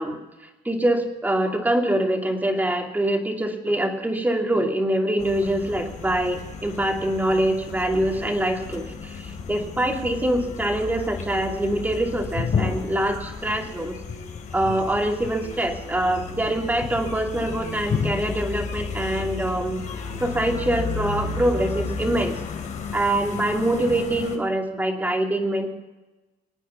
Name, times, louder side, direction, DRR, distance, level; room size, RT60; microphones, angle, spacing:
voice 1, 0.0-14.0 14.5-19.8 20.2-22.4 22.9-25.7, right 1 dB, 10° right, 2 dB, 2.8 m, -24 dB
sound 1, 5.2-24.4, left 5 dB, 50° left, 3.2 m, -32 dB
26.5 x 9.0 x 5.8 m, 1.1 s
cardioid pair, 110°, 17 cm